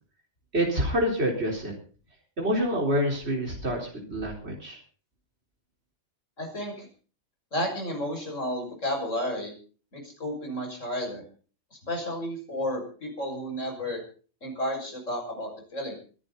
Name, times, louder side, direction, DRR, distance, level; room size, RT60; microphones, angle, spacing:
voice 1, 0.5-1.7 2.4-4.8, equal, 55° right, 0 dB, 4.5 m, -27 dB
voice 2, 6.4-6.9 7.5-9.5 9.9-11.2 11.7-14.0 14.4-15.9, equal, 75° left, 3 dB, 6.6 m, -32 dB
25.5 x 11.5 x 4.1 m, 0.40 s
omnidirectional pair, 1.3 m